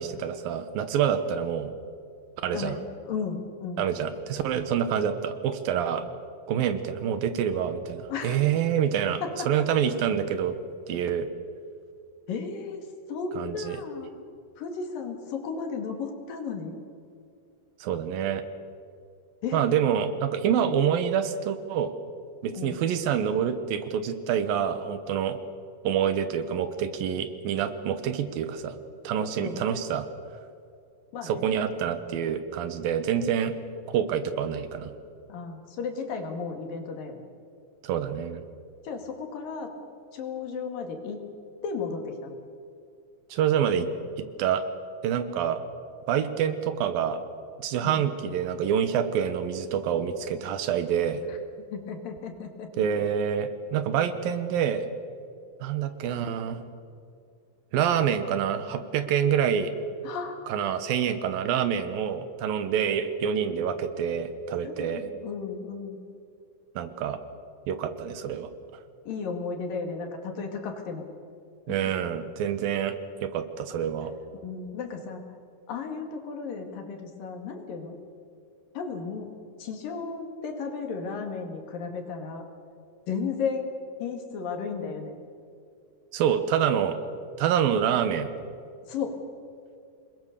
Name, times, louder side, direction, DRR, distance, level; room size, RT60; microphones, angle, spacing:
voice 1, 0.0-1.7 2.4-2.8 3.8-6.0 6.5-10.6 10.9-11.3 13.4-13.8 17.8-18.4 19.5-21.9 22.4-25.4 25.8-28.8 29.0-30.1 31.2-33.5 33.9-34.9 37.8-38.4 43.3-43.9 44.4-44.6 45.0-45.6 46.1-47.2 47.6-51.2 52.8-54.9 55.6-56.6 57.7-59.7 60.5-65.0 66.8-67.2 67.7-68.5 71.7-72.9 73.2-74.1 86.1-87.0 87.4-88.3, right 8 dB, 80° right, 10 dB, 3.0 m, -27 dB
voice 2, 2.5-3.9 8.1-8.4 9.2-9.5 12.3-14.1 14.6-16.8 19.4-19.7 22.5-22.8 29.4-29.6 31.1-31.5 35.3-37.3 38.8-39.7 40.1-41.2 41.6-42.4 47.8-48.0 51.7-53.0 60.0-60.4 64.6-66.0 69.1-71.0 71.7-71.8 74.4-75.2 75.7-78.0 78.8-79.3 79.6-82.5 83.1-83.7 84.0-85.1 88.9-89.2, left 5 dB, 75° left, 4 dB, 3.9 m, -34 dB
26.5 x 21.0 x 6.8 m, 2.4 s
omnidirectional pair, 4.1 m